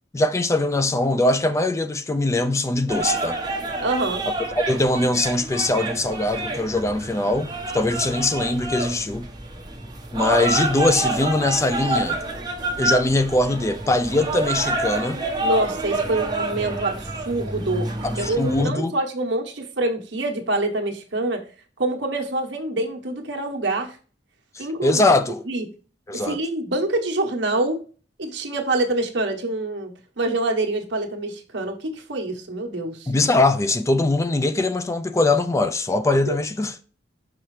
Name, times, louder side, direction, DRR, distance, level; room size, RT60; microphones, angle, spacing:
voice 1, 0.1-3.4 4.6-9.3 10.1-12.2 12.8-15.2 18.0-18.9 24.5-25.4 26.1-26.4 33.1-36.7, left 2 dB, 15° left, 0.3 m, -22 dB
sound 1, 2.9-18.6, right 2 dB, 25° right, 1.3 m, -28 dB
voice 2, 3.8-4.2 15.4-21.4 21.8-24.0 24.6-25.0 25.5-25.7 26.1-27.8 28.2-33.1 36.3-36.4, right 2 dB, 70° right, 1.1 m, -26 dB
5.7 x 5.7 x 3.2 m
head